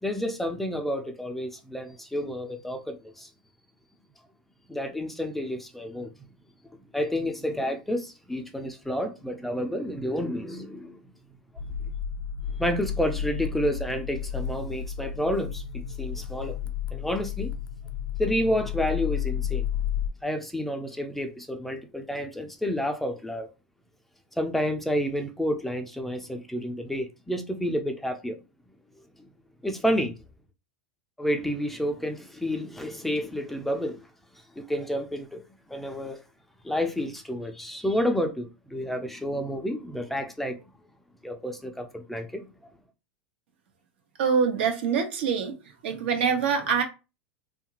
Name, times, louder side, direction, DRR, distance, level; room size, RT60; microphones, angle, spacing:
voice 1, 0.0-3.3 4.7-6.1 6.9-11.0 12.6-16.6 16.9-17.5 18.2-19.7 20.2-23.5 24.4-28.4 29.2-29.3 29.6-30.1 31.2-34.1 34.6-35.4 35.7-36.2 36.6-40.6 41.2-42.5, equal, 5° left, 0.4 m, -30 dB
sound 1, 11.6-20.1, left 8 dB, 75° left, 0.4 m, -32 dB
voice 2, 44.2-45.5 45.8-46.8, right 6 dB, 75° right, 0.9 m, -24 dB
2.7 x 2.3 x 2.9 m
supercardioid pair, 135°, 6 cm